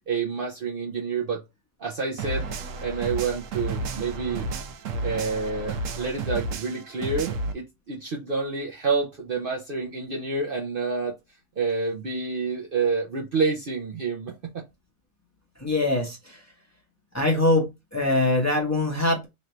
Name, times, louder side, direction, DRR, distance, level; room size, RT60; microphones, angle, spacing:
voice 1, 0.1-1.4 1.8-2.5 2.8-4.5 5.0-11.2 11.6-14.6, right 4 dB, 50° right, 0.7 m, -28 dB
sound 1, 2.2-7.5, right 2 dB, 80° right, 1.0 m, -32 dB
voice 2, 15.6-16.4 17.1-19.3, left 2 dB, 15° left, 1.0 m, -23 dB
3.2 x 2.5 x 4.2 m
omnidirectional pair, 1.4 m